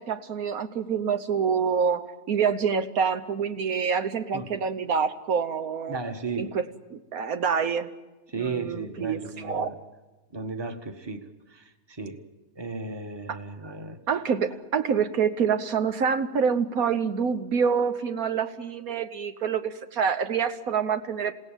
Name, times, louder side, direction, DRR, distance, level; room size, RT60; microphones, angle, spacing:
voice 1, 0.0-6.0 6.4-6.6 6.9-7.9 8.3-9.7 13.3-13.4 14.1-21.3, right 6 dB, 80° right, 9 dB, 1.5 m, -26 dB
voice 2, 5.9-6.6 8.3-9.8 10.3-12.2 12.5-14.0, right 4 dB, 20° right, 6 dB, 1.4 m, -35 dB
28.0 x 17.0 x 9.0 m, 1.1 s
omnidirectional pair, 1.5 m